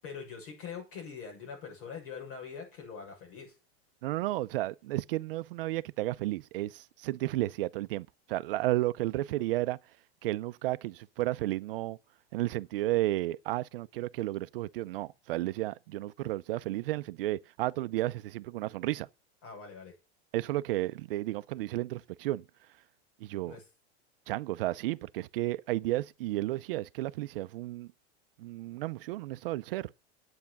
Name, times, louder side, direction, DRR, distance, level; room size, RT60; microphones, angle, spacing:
voice 1, 0.0-3.5 19.4-19.9 23.5-23.6, left 6 dB, 55° left, 6.7 m, -43 dB
voice 2, 4.0-9.8 10.2-12.0 12.3-19.1 20.3-22.4 23.2-23.6 24.3-27.9 28.4-29.9, right 16 dB, 65° right, 0.5 m, -32 dB
9.4 x 8.7 x 5.8 m
supercardioid pair, 180°, 31 cm